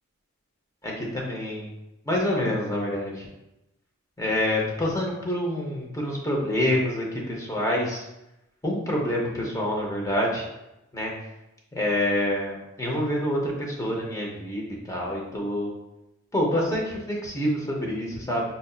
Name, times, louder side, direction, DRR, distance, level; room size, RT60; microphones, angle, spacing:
voice 1, 0.8-1.7 2.0-3.3 4.2-8.0 8.6-10.4 10.9-11.1 11.7-15.7 16.3-18.4, left 1 dB, 15° left, -2 dB, 0.8 m, -27 dB
5.3 x 2.6 x 2.4 m, 0.92 s
head